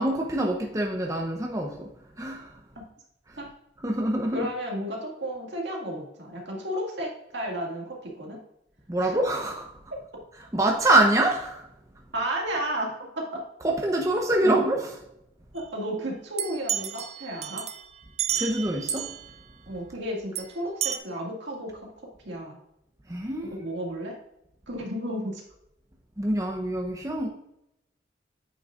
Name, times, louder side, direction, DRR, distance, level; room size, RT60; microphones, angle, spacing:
voice 1, 0.0-1.9 2.2-2.6 3.3-3.4 3.8-4.5 8.9-9.7 10.5-11.7 13.6-14.9 18.4-19.1 23.1-23.6 26.2-27.3, right 1 dB, 20° right, 0 dB, 0.8 m, -25 dB
voice 2, 4.3-8.4 9.0-9.1 12.1-13.4 14.4-14.5 15.5-17.7 19.7-22.6 23.5-24.2 24.7-25.4, equal, 75° right, -1 dB, 2.0 m, -33 dB
sound 1, 16.4-19.3 20.3-20.4 20.8-21.0, right 10 dB, 35° right, 0.4 m, -31 dB
8.7 x 6.1 x 2.5 m, 0.81 s
head